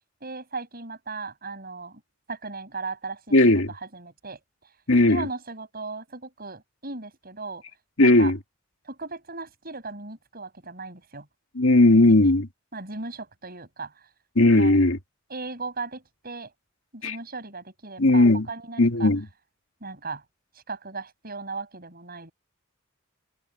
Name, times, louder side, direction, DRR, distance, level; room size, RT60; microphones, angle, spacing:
voice 1, 0.2-2.0 2.3-3.4 3.7-4.4 5.1-7.6 8.0-8.3 8.8-11.3 12.0-12.3 12.7-13.9 14.5-14.8 15.3-16.5 16.9-19.1 19.8-20.2 20.7-22.3, right 3 dB, 45° right, 7.2 m, -37 dB
voice 2, 3.3-3.7 4.9-5.3 8.0-8.4 11.6-12.5 14.4-15.0 17.0-17.1 18.0-18.5 18.8-19.3, left 2 dB, 70° left, 2.3 m, -17 dB
head